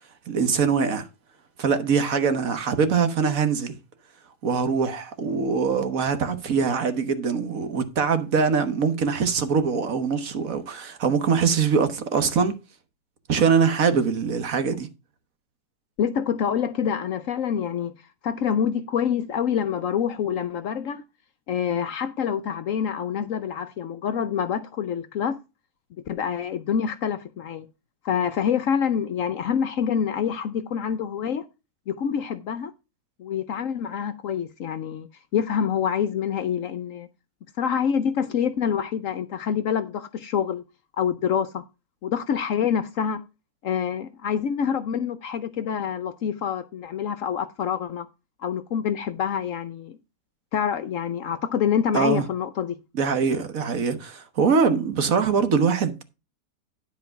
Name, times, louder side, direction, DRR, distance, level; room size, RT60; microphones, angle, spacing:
voice 1, 0.3-1.1 1.6-3.8 4.4-12.6 13.3-14.9 51.9-52.2 52.9-56.0, right 5 dB, 60° right, 1.5 m, -23 dB
voice 2, 16.0-17.9 18.2-21.0 21.5-25.4 26.1-27.7 28.0-31.4 31.9-32.7 33.2-35.1 35.3-37.1 37.6-40.6 41.0-41.6 42.0-43.2 43.6-48.1 48.4-50.0 50.5-52.7, left 8 dB, 65° left, 0.9 m, -26 dB
10.5 x 4.6 x 5.8 m
omnidirectional pair, 1.8 m